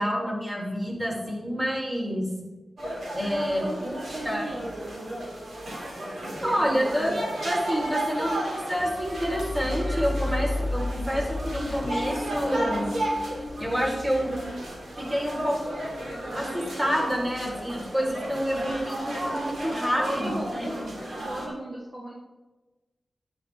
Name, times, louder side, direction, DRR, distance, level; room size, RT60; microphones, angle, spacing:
voice 1, 0.0-2.3 3.1-4.5 6.4-12.9 13.6-14.3 15.0-15.8 16.3-20.7, equal, 25° right, -3 dB, 4.4 m, -28 dB
sound 1, 2.8-21.5, right 1 dB, 90° right, 3.0 m, -34 dB
voice 2, 3.2-4.9 14.2-14.6 20.0-20.8 21.2-22.1, right 1 dB, 55° right, -4 dB, 2.0 m, -35 dB
sound 2, 8.8-14.5, left 2 dB, 45° left, 0.5 m, -33 dB
11.0 x 10.5 x 3.7 m, 1.2 s
cardioid pair, 55°, 0 cm